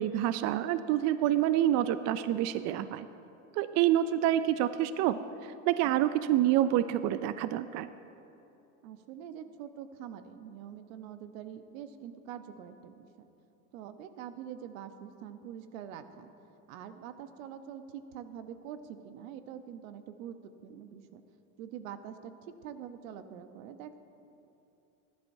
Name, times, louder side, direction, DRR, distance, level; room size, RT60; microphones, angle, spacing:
voice 1, 0.0-3.1 3.6-7.9, right 12 dB, 45° right, 13 dB, 0.4 m, -27 dB
voice 2, 8.8-13.3 13.7-16.3 16.7-21.2 21.6-22.3 22.6-24.0, right 9 dB, 75° right, 10 dB, 0.9 m, -45 dB
19.5 x 11.5 x 2.7 m, 2.8 s
supercardioid pair, 110°, 41 cm